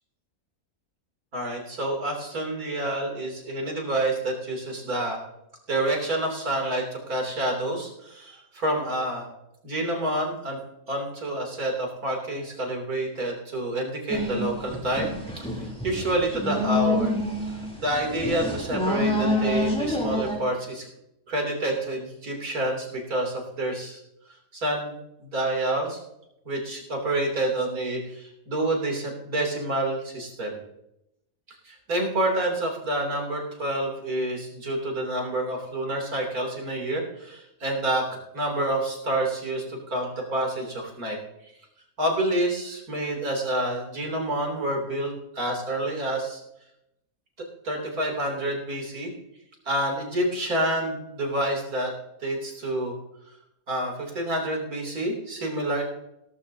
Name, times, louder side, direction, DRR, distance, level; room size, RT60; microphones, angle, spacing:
voice 1, 1.3-5.2 5.7-9.3 9.6-10.6 10.9-15.1 15.4-17.1 17.8-20.9 21.3-24.0 24.5-26.0 26.5-30.6 31.6-41.2 42.0-46.4 47.4-49.1 49.7-51.9 52.2-52.9 53.7-55.8, right 1 dB, 90° right, 0 dB, 3.7 m, -28 dB
sound 1, 14.1-20.4, left 1 dB, 5° left, 3.3 m, -27 dB
17.5 x 14.0 x 2.8 m, 0.84 s
omnidirectional pair, 1.5 m